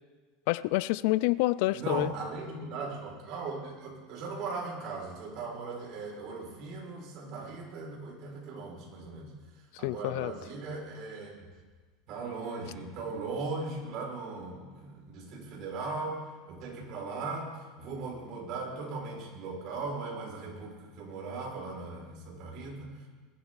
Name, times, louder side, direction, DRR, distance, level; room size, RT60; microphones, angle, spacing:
voice 1, 0.5-2.1 9.8-10.3, left 19 dB, 65° left, 19 dB, 0.4 m, -27 dB
voice 2, 1.7-11.5 12.1-23.1, right 3 dB, 50° right, -2 dB, 5.8 m, -38 dB
21.5 x 13.0 x 4.1 m, 1.4 s
supercardioid pair, 145°, 0 cm